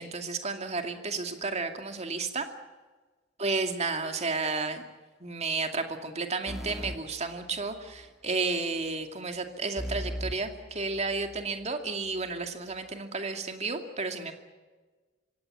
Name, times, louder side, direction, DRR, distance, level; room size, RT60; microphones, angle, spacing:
voice 1, 0.0-2.5 3.4-4.8 5.2-14.3, right 3 dB, 35° right, 6 dB, 2.4 m, -32 dB
sound 1, 6.5-8.1 9.8-11.5, equal, ahead, 1.3 m, -39 dB
24.5 x 17.5 x 8.7 m, 1.3 s
head